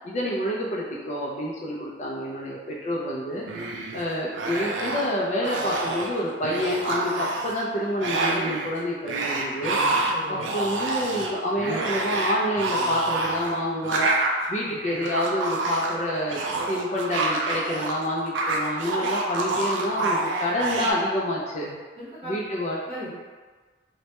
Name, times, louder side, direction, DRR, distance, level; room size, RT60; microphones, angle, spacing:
voice 1, 0.0-3.4 3.9-9.8 10.3-14.1 14.5-16.4 16.7-21.7 22.2-22.8, equal, 40° left, -4 dB, 0.3 m, -28 dB
sound 1, 3.4-4.0 4.3-5.1 5.4-6.1 6.4-7.7 8.0-8.7 9.0-17.9 18.2-20.9, right 2 dB, 85° right, 0.3 m, -27 dB
voice 2, 10.1-10.6 14.6-15.1 21.4-22.3 22.9-23.1, equal, 35° right, -10 dB, 0.7 m, -40 dB
2.1 x 2.1 x 2.8 m, 1.4 s
head